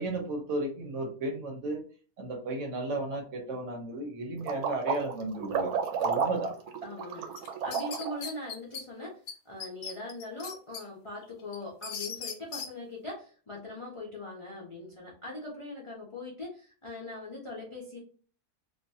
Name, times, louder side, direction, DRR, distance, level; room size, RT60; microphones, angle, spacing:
voice 1, 0.0-1.8 2.2-6.5, right 2 dB, 60° right, 1 dB, 1.0 m, -34 dB
sound 1, 4.4-8.3, right 6 dB, 85° right, 1.1 m, -31 dB
voice 2, 6.8-18.0, left 2 dB, 50° left, -4 dB, 0.3 m, -41 dB
sound 2, 7.4-8.8 9.3-9.4 9.6-10.8 11.2-12.7, left 6 dB, 70° left, 0.9 m, -39 dB
2.6 x 2.2 x 2.6 m, 0.39 s
omnidirectional pair, 1.5 m